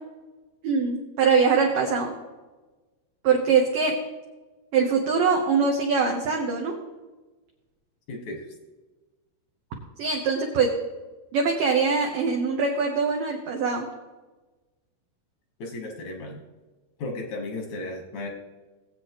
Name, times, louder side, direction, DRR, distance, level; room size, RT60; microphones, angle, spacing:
voice 1, 0.6-2.1 3.2-3.9 4.7-6.7 10.0-10.7 11.3-13.9, right 5 dB, 80° right, 1 dB, 2.0 m, -23 dB
voice 2, 8.1-8.5 15.6-16.4 17.0-18.3, left 2 dB, 65° left, 1 dB, 1.8 m, -34 dB
19.5 x 8.2 x 3.0 m, 1.2 s
omnidirectional pair, 5.3 m